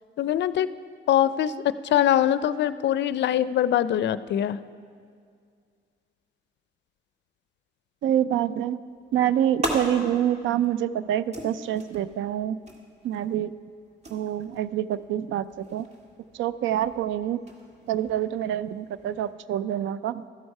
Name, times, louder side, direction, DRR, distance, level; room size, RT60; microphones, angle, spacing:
voice 1, 0.2-0.7 1.1-1.5 1.9-4.6, left 11 dB, 65° left, 15 dB, 0.4 m, -23 dB
voice 2, 8.0-8.8 9.1-12.6 13.0-13.5 14.1-15.9 16.3-17.4 17.9-20.2, right 10 dB, 75° right, 16 dB, 0.4 m, -26 dB
sound 1, 8.9-19.3, right 1 dB, 35° right, 1.9 m, -40 dB
13.5 x 7.9 x 5.4 m, 2.1 s
cardioid pair, 90°, 20 cm